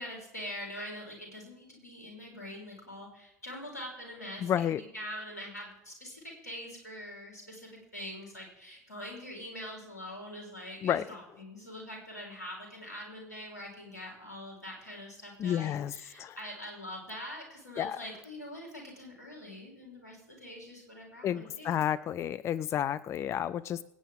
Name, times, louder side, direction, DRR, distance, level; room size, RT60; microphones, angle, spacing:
voice 1, 0.0-21.8, left 1 dB, 85° left, -1 dB, 3.9 m, -44 dB
voice 2, 4.4-4.8 10.8-11.0 15.4-16.4 17.8-18.0 21.2-23.8, left 10 dB, 35° left, 16 dB, 0.4 m, -31 dB
24.0 x 9.0 x 3.6 m, 0.91 s
figure-of-eight pair, 75°, 9 cm